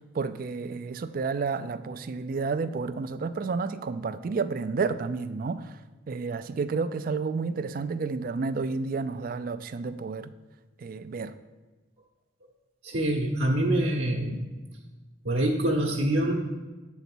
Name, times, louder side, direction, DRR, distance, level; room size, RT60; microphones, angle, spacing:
voice 1, 0.1-5.8 6.1-10.3 10.8-11.3, right 4 dB, 50° right, 12 dB, 0.4 m, -31 dB
voice 2, 12.8-14.5 15.2-16.3, right 1 dB, 70° right, -2 dB, 0.9 m, -25 dB
8.0 x 4.0 x 6.1 m, 1.2 s
head